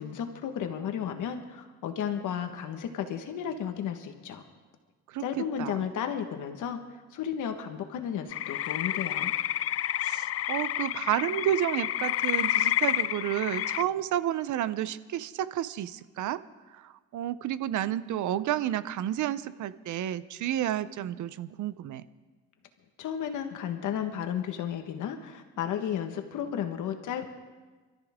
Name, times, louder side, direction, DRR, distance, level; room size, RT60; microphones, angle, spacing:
voice 1, 0.0-4.4 5.2-6.8 7.1-9.3 23.0-27.3, left 8 dB, 80° left, 6 dB, 1.5 m, -33 dB
voice 2, 5.1-5.8 10.0-16.4 16.7-22.0, right 12 dB, 75° right, 16 dB, 0.7 m, -31 dB
sound 1, 8.3-13.8, left 13 dB, 50° left, 0.4 m, -29 dB
27.0 x 13.5 x 3.6 m, 1.3 s
cardioid pair, 90°, 30 cm